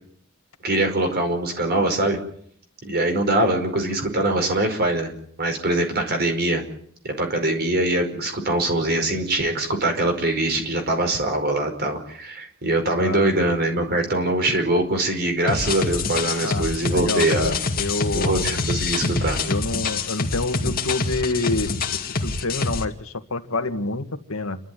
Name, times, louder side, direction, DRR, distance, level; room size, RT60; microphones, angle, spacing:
voice 1, 0.6-2.2 2.8-5.1 5.4-6.6 7.0-17.6 18.1-19.4, right 1 dB, 50° right, 5 dB, 5.0 m, -23 dB
voice 2, 13.0-13.3 16.4-18.5 19.5-24.6, left 2 dB, 75° left, 8 dB, 1.8 m, -28 dB
sound 1, 15.5-22.8, left 4 dB, 45° left, 2.2 m, -26 dB
29.0 x 12.5 x 9.4 m, 0.62 s
head